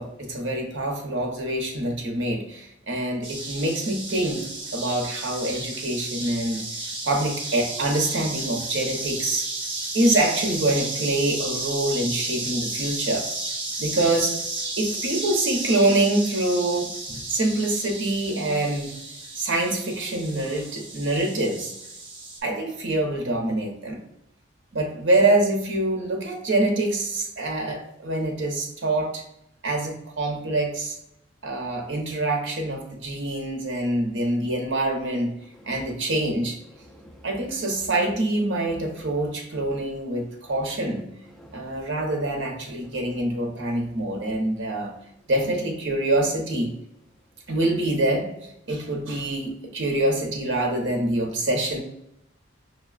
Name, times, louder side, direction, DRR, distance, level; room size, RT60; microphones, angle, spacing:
voice 1, 0.0-6.7 7.0-9.5 9.9-13.3 13.8-14.4 14.8-19.0 19.3-21.7 22.4-24.0 24.7-29.2 29.6-31.0 31.4-35.3 35.6-36.6 37.2-41.1 41.5-44.9 45.3-46.7 47.5-48.3 48.7-51.8, right 2 dB, 65° right, 2 dB, 0.8 m, -25 dB
sound 1, 3.2-22.4, right 2 dB, 25° right, 1.0 m, -33 dB
voice 2, 35.5-36.0 36.2-36.3 36.7-37.5 37.8-37.9 39.1-39.8 40.5-42.2 42.8-43.2 43.6-44.3 44.7-45.0, equal, ahead, -1 dB, 0.4 m, -51 dB
6.1 x 2.1 x 2.4 m, 0.77 s
head